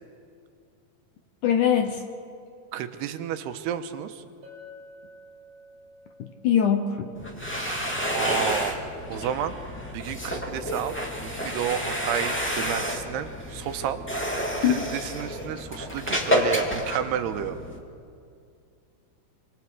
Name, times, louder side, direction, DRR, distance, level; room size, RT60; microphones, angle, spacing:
voice 1, 1.4-2.0 6.2-7.1 14.6-14.7, left 9 dB, 70° left, 5 dB, 2.0 m, -22 dB
voice 2, 2.7-4.2 8.1-8.8 9.1-9.6 9.9-14.3 14.6-17.6, right 10 dB, 90° right, 9 dB, 3.0 m, -31 dB
Chink clink, 4.4-8.6, left 2 dB, 60° right, 5.9 m, -51 dB
sound 1, 7.1-17.8, equal, 5° left, 1.2 m, -30 dB
26.5 x 26.5 x 4.8 m, 2.4 s
omnidirectional pair, 4.6 m